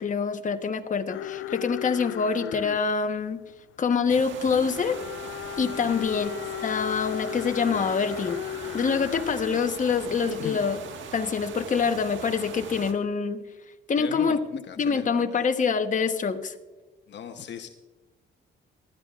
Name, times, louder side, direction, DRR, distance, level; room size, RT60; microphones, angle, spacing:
voice 1, 0.0-3.4 3.8-5.0 5.6-6.3 6.6-8.4 8.7-10.8 11.1-13.4 13.9-14.4 14.8-16.5, left 5 dB, 40° left, 6 dB, 1.2 m, -25 dB
sound 1, 1.1-9.7 10.2-10.6 10.8-10.9, left 12 dB, 80° left, 0.5 m, -36 dB
sound 2, 4.1-12.9, right 6 dB, 70° right, 1.6 m, -41 dB
voice 2, 5.8-6.3 10.4-10.6 14.0-15.4 17.1-17.7, left 8 dB, 60° left, 6 dB, 0.9 m, -39 dB
19.0 x 13.0 x 2.5 m, 1.2 s
cardioid pair, 90°, 20 cm